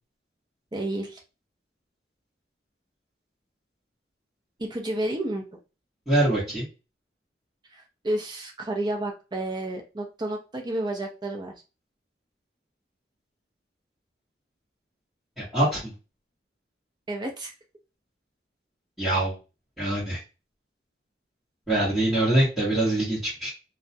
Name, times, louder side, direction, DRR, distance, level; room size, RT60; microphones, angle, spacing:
voice 1, 0.7-1.2 4.6-5.4 7.7-11.5 17.1-17.5, right 1 dB, 25° right, 2 dB, 0.5 m, -31 dB
voice 2, 6.1-6.7 15.4-15.9 19.0-19.3 19.8-20.2 21.7-23.5, right 1 dB, ahead, -12 dB, 1.0 m, -24 dB
2.3 x 2.0 x 2.6 m, 0.30 s
head